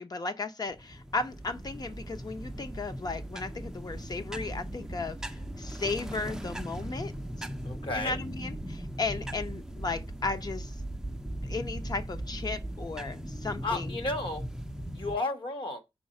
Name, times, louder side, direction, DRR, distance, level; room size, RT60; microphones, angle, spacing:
voice 1, 0.0-7.1 7.4-7.5 7.9-10.7 11.4-14.0, left 3 dB, 45° left, 0.8 m, -35 dB
sound 1, 0.7-15.2, right 1 dB, 5° right, 0.5 m, -38 dB
voice 2, 7.6-8.2 13.6-14.4 14.9-15.8, left 2 dB, 60° left, 1.4 m, -32 dB
4.7 x 4.6 x 5.3 m
wide cardioid pair, 135°, 10 cm